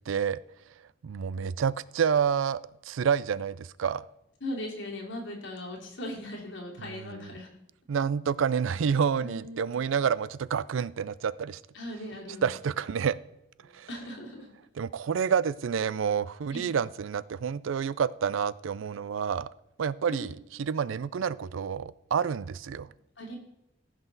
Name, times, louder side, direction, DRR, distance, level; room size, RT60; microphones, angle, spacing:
voice 1, 0.1-0.4 1.0-4.0 7.9-11.6 12.4-13.2 13.7-13.9 14.8-19.5 19.8-22.9, right 7 dB, 90° right, 19 dB, 0.4 m, -28 dB
voice 2, 4.4-7.5 9.2-10.0 11.7-12.5 13.6-14.5 16.5-16.7 20.1-20.3 22.8-23.4, left 1 dB, 75° left, -1 dB, 2.6 m, -39 dB
15.0 x 6.0 x 3.9 m, 0.87 s
head